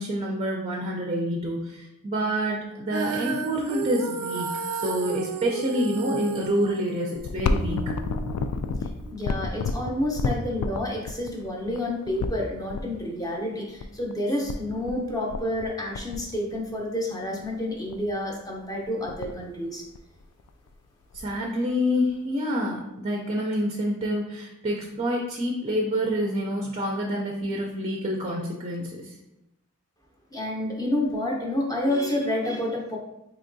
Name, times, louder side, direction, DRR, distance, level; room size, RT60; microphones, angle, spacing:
voice 1, 0.0-4.5 4.8-7.8 21.1-29.1, equal, 30° right, 0 dB, 0.4 m, -27 dB
Female singing, 2.9-9.1, right 5 dB, 85° right, 0.4 m, -33 dB
sound 1, 7.2-12.8 13.8-13.9 14.1-14.2 14.5-15.0 15.3-15.7 15.9-16.8 17.4-17.5 17.9-18.2 18.6-18.7 18.8-19.4 19.9-20.7 21.1-21.2 22.1-22.2, left 4 dB, 85° left, 0.3 m, -30 dB
voice 2, 9.1-19.8 30.3-33.0, left 1 dB, 15° left, -1 dB, 0.7 m, -29 dB
4.4 x 2.9 x 2.6 m, 0.87 s
head